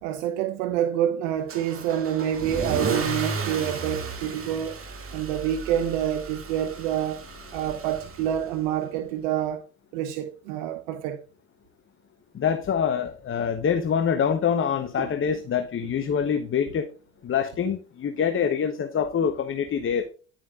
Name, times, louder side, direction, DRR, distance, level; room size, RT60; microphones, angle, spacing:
voice 1, 0.0-4.8 5.1-7.2 7.5-9.6 9.9-11.2 15.0-15.1, right 10 dB, 75° right, 0.9 m, -27 dB
Car / Engine starting / Accelerating revving vroom, 1.5-8.6, right 3 dB, 35° right, 2.3 m, -34 dB
voice 2, 12.3-16.9 17.2-20.1, left 7 dB, 30° left, 0.9 m, -25 dB
10.5 x 7.4 x 2.4 m
hypercardioid pair, 65°, 39 cm